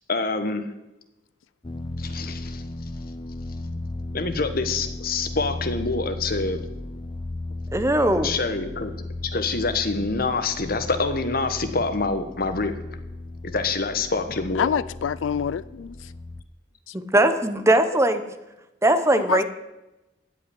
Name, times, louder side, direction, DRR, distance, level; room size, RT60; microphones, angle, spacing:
voice 1, 0.1-0.6 2.0-2.6 4.1-6.6 8.2-8.9 9.2-12.7 13.4-14.8, left 3 dB, 50° left, 8 dB, 1.3 m, -26 dB
sound 1, 1.6-16.4, left 2 dB, 25° left, 0.5 m, -35 dB
voice 2, 7.7-8.4 16.9-18.2 18.8-19.4, right 1 dB, 15° right, 9 dB, 0.9 m, -20 dB
voice 3, 14.6-16.1 16.9-17.0 19.3-19.4, left 7 dB, 85° left, 18 dB, 0.4 m, -26 dB
16.0 x 5.5 x 9.9 m, 0.98 s
head